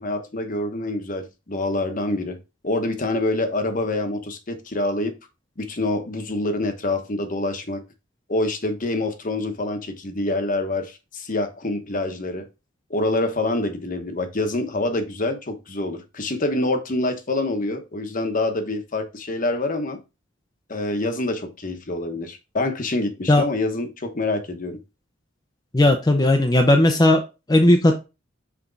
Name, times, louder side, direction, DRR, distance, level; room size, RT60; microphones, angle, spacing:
voice 1, 0.0-2.4 2.6-5.1 5.6-7.8 8.3-12.5 12.9-20.0 20.7-24.8, left 2 dB, 45° left, 1.0 m, -26 dB
voice 2, 25.7-27.2 27.5-27.9, left 1 dB, 20° left, 0.6 m, -16 dB
6.1 x 4.5 x 3.9 m
head